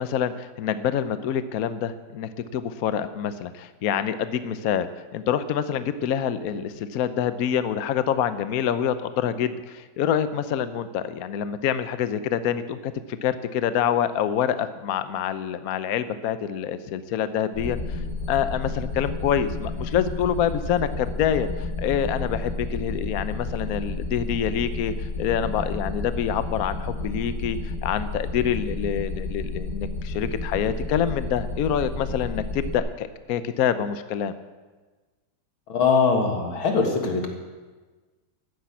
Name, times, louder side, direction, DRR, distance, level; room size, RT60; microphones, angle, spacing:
voice 1, 0.0-17.8 18.3-34.3, left 8 dB, 65° left, 12 dB, 0.9 m, -26 dB
sound 1, 17.5-32.8, left 3 dB, 35° left, 2.3 m, -31 dB
voice 2, 35.7-37.3, left 5 dB, 80° left, 3 dB, 2.8 m, -21 dB
13.5 x 10.0 x 8.2 m, 1.3 s
omnidirectional pair, 2.2 m